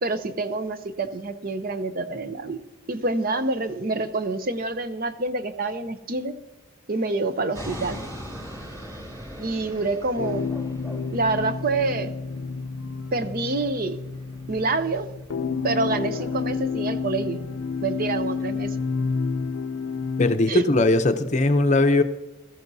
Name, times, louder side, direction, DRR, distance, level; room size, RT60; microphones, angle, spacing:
voice 1, 0.0-2.6 2.9-6.3 6.9-8.1 9.4-10.5 11.1-12.1 13.1-14.0 14.5-15.1 15.6-17.4 17.8-18.8 20.5-20.6, right 3 dB, 45° right, 0.6 m, -27 dB
sound 1, 7.5-19.5, equal, 15° right, 2.9 m, -43 dB
sound 2, 10.2-20.3, left 5 dB, 85° left, 0.5 m, -30 dB
voice 2, 20.2-22.0, left 2 dB, 35° left, 0.6 m, -19 dB
17.0 x 13.5 x 2.7 m
head